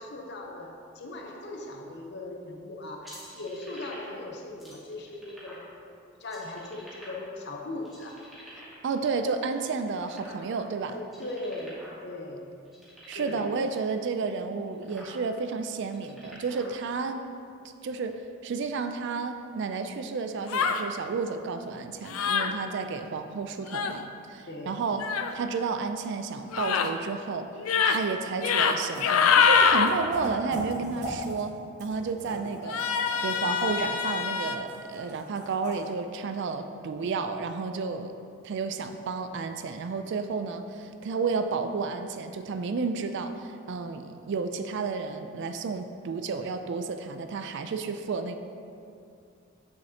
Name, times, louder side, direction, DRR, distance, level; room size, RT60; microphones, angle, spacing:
voice 1, 0.0-5.9 6.2-8.2 10.9-12.5 13.1-13.6 24.5-24.8, left 2 dB, 50° left, 1 dB, 0.8 m, -39 dB
sound 1, 3.0-4.2 4.6-5.7 6.2-7.5 7.8-8.9 9.4-10.7 11.0-12.0 12.3-12.4 12.6-13.5 14.2-14.3 14.7-15.1 15.8-16.7, equal, ahead, 1.6 m, -47 dB
voice 2, 8.8-10.9 13.1-17.3 17.8-25.0 25.3-27.5 27.8-32.9 33.2-38.1 38.4-48.4, right 4 dB, 55° right, 8 dB, 0.3 m, -31 dB
sound 2, 20.5-20.8 22.1-22.5 23.7-24.0 25.0-25.3 26.5-26.9 27.6-28.0 28.4-28.7 29.0-29.9 32.7-34.6, left 6 dB, 70° left, 0.4 m, -24 dB
sound 3, 28.6-28.7 28.9-31.5 31.8-35.9, right 1 dB, 35° right, 1.3 m, -39 dB
8.1 x 6.4 x 2.8 m, 2.4 s
head